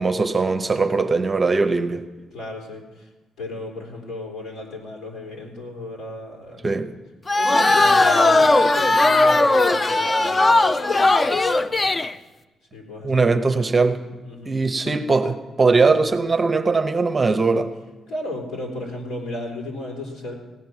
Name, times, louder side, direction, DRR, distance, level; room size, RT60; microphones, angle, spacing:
voice 1, 0.0-2.0 6.6-6.9 13.0-14.0 14.5-17.7, right 4 dB, 25° right, 0.7 m, -20 dB
voice 2, 2.3-3.1 3.4-6.7 7.3-12.3 12.7-13.7 14.2-15.0 18.1-20.3, left 2 dB, 85° left, 3.5 m, -35 dB
sound 1, 7.3-12.1, left 2 dB, 20° left, 0.4 m, -17 dB
16.5 x 6.0 x 9.6 m
cardioid pair, 145°, 0 cm